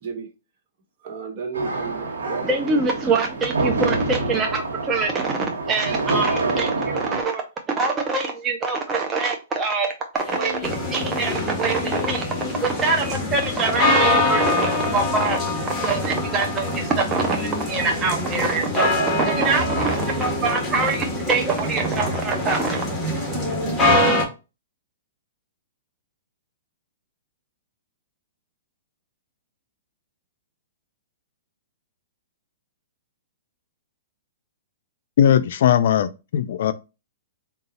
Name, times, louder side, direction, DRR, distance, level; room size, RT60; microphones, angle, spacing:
voice 1, 1.0-3.0, right 5 dB, 50° right, 1.2 m, -33 dB
sound 1, 1.5-7.2, right 3 dB, 85° right, 1.0 m, -26 dB
voice 2, 2.4-7.4 7.7-12.2 12.6-15.4 15.7-18.9 19.2-22.9, right 4 dB, 20° right, 0.5 m, -24 dB
sound 2, 10.1-15.1, left 5 dB, 30° left, 1.5 m, -34 dB
sound 3, 10.6-24.2, left 1 dB, 10° left, 1.3 m, -24 dB
voice 3, 35.2-36.7, left 9 dB, 65° left, 0.4 m, -18 dB
3.9 x 2.3 x 4.0 m
hypercardioid pair, 140°, 0 cm